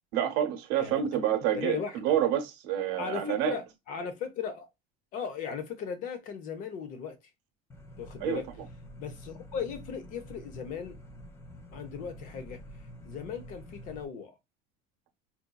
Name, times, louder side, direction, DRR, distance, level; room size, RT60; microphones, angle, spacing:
voice 1, 0.1-3.6 8.2-8.4, right 10 dB, 65° right, 0.9 m, -28 dB
voice 2, 1.5-2.0 3.0-3.6 3.9-4.7 5.1-7.2 8.0-8.4 9.0-11.0 11.7-12.6 13.0-14.3, left 7 dB, 45° left, 0.7 m, -37 dB
sound 1, 7.7-14.0, equal, 15° left, 0.4 m, -48 dB
4.3 x 2.5 x 2.3 m
cardioid pair, 170°, 19 cm